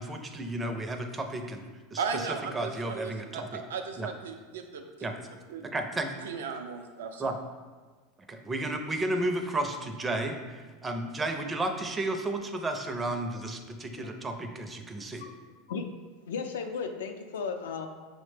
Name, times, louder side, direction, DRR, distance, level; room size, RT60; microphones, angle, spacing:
voice 1, 0.0-1.6 1.9-3.6 4.0-4.1 5.0-5.1 5.6-6.1 7.2-7.4 8.3-15.2, right 2 dB, 15° right, 5 dB, 0.4 m, -33 dB
voice 2, 2.0-4.8 5.5-5.7 6.2-7.3, right 5 dB, 90° right, 5 dB, 0.4 m, -36 dB
voice 3, 16.3-17.9, left 5 dB, 85° left, 6 dB, 0.4 m, -35 dB
5.7 x 2.1 x 3.2 m, 1.4 s
supercardioid pair, 115°, 0 cm